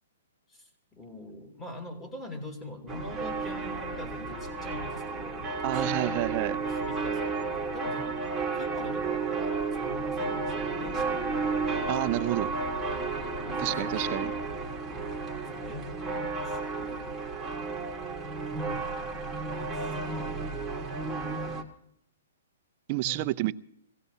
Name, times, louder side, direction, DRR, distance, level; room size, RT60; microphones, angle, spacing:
voice 1, 0.5-11.4 13.4-14.3 15.2-17.3 18.5-18.9 19.5-20.8 23.0-23.3, left 1 dB, 15° left, 2 dB, 2.6 m, -44 dB
sound 1, 2.9-21.6, right 4 dB, 5° right, 1.5 m, -32 dB
voice 2, 5.6-6.6 11.9-12.5 13.6-14.3 22.9-23.5, right 17 dB, 35° right, 12 dB, 0.5 m, -29 dB
22.5 x 17.5 x 2.8 m, 0.71 s
hypercardioid pair, 160°, 0 cm